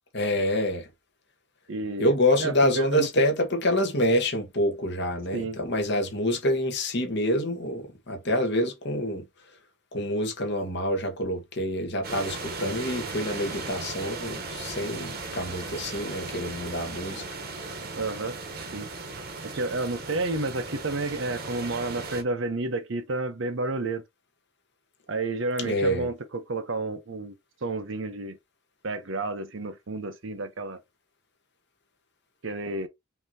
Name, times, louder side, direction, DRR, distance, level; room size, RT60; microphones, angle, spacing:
voice 1, 0.1-0.9 2.0-9.2 9.9-17.2 25.6-26.1, left 1 dB, 55° left, 1.4 m, -26 dB
voice 2, 1.7-2.1 2.4-3.1 5.3-5.6 17.9-18.4 18.7-18.9 19.4-24.0 25.1-27.3 27.6-28.4 28.8-30.8 32.4-32.9, right 2 dB, 65° right, 0.8 m, -30 dB
sound 1, 12.0-22.2, right 3 dB, 50° right, 1.1 m, -37 dB
5.5 x 2.9 x 2.8 m
head